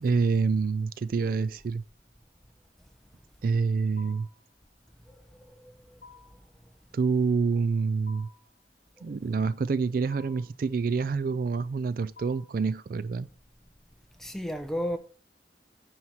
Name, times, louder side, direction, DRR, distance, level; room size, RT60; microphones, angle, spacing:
voice 1, 0.0-1.8 3.4-4.3 6.9-8.3 9.0-13.3, right 4 dB, 55° right, 0.3 m, -27 dB
sound 1, 4.0-4.5 6.0-6.5 8.1-8.5 10.1-10.6 12.2-12.6, left 5 dB, 50° left, 1.0 m, -52 dB
voice 2, 5.5-6.0 14.2-15.0, equal, ahead, 0.9 m, -34 dB
9.5 x 4.6 x 6.1 m
head